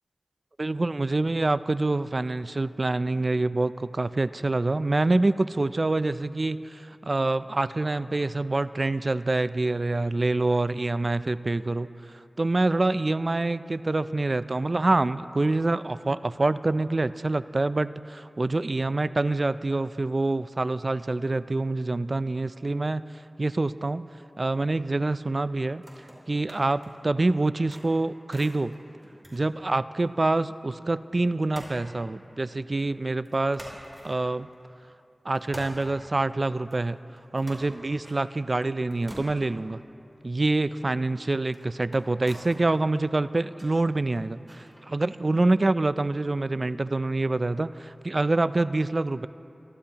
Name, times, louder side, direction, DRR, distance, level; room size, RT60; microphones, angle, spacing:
voice 1, 0.6-11.9 12.4-23.0 23.4-24.0 24.4-25.8 26.3-28.7 29.3-33.6 34.0-34.5 35.3-37.0 37.3-39.8 40.2-49.3, right 2 dB, 50° right, 15 dB, 0.3 m, -26 dB
sound 1, 25.7-27.1 27.5-30.3 30.6-30.7 31.5-32.9 33.3-34.9 35.3-45.2, equal, 25° right, 3.3 m, -48 dB
23.5 x 12.0 x 2.9 m, 2.7 s
wide cardioid pair, 50°, 0 cm